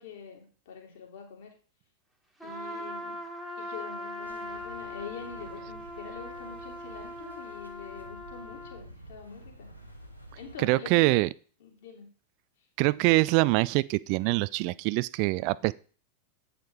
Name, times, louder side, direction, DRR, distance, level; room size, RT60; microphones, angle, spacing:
voice 1, 0.0-1.6 2.4-3.2 3.6-9.7 10.3-11.2 11.6-12.1, left 6 dB, 55° left, 2.7 m, -45 dB
Trumpet, 2.4-8.8, left 1 dB, ahead, 1.4 m, -40 dB
sound 1, 4.2-10.6, right 1 dB, 90° left, 1.3 m, -50 dB
voice 2, 10.6-11.3 12.8-15.7, right 21 dB, 45° right, 0.3 m, -24 dB
9.0 x 5.2 x 4.5 m
figure-of-eight pair, 90°, 0 cm